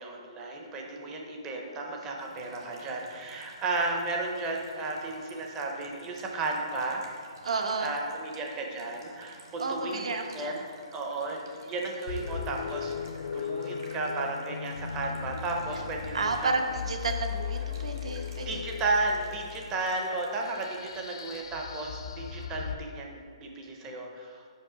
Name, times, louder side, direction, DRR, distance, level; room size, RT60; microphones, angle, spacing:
voice 1, 0.0-7.0 7.8-10.7 10.9-12.9 13.3-16.6 18.5-24.4, right 2 dB, 10° right, 0 dB, 0.5 m, -34 dB
sound 1, 2.2-21.4, right 2 dB, 40° right, 1.0 m, -54 dB
voice 2, 7.4-7.9 9.6-10.6 16.1-18.6, right 3 dB, 75° right, 4 dB, 0.9 m, -31 dB
sound 2, 12.1-22.7, left 7 dB, 50° left, 0.4 m, -37 dB
5.6 x 5.3 x 4.9 m, 2.2 s
hypercardioid pair, 180°, 3 cm